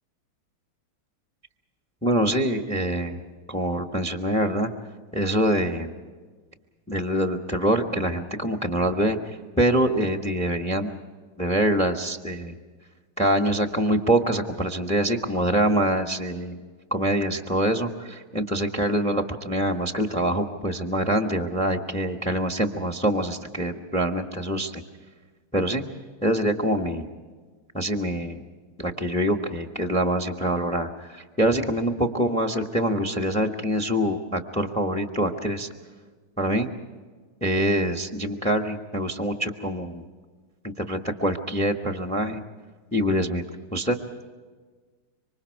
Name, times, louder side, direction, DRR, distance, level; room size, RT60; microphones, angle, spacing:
voice 1, 2.0-3.2 3.5-4.7 5.1-5.9 6.9-11.0 11.4-12.5 13.2-16.6 16.9-24.8 25.5-25.8 26.2-27.1 27.7-28.4 28.8-35.7 36.4-36.7 37.4-40.0 40.6-42.4 42.9-43.4 43.7-44.0, right 1 dB, 5° left, 5 dB, 0.8 m, -25 dB
26.5 x 24.5 x 4.7 m, 1.4 s
omnidirectional pair, 2.4 m